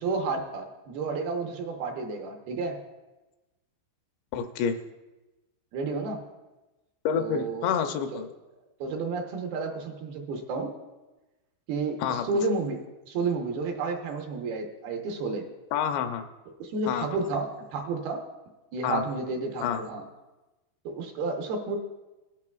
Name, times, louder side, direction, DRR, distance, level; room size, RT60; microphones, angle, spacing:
voice 1, 0.0-2.8 5.7-6.2 7.2-7.7 8.1-8.2 8.8-10.7 11.7-12.8 13.1-15.5 16.6-18.3 18.7-20.1 20.9-21.8, right 3 dB, 70° right, 2 dB, 2.6 m, -31 dB
voice 2, 4.3-4.8 7.1-8.3 12.0-12.2 15.7-16.3 16.9-17.1 18.8-19.0 19.6-19.8, left 8 dB, 85° left, 7 dB, 2.9 m, -28 dB
18.5 x 10.5 x 2.3 m, 1.1 s
omnidirectional pair, 5.0 m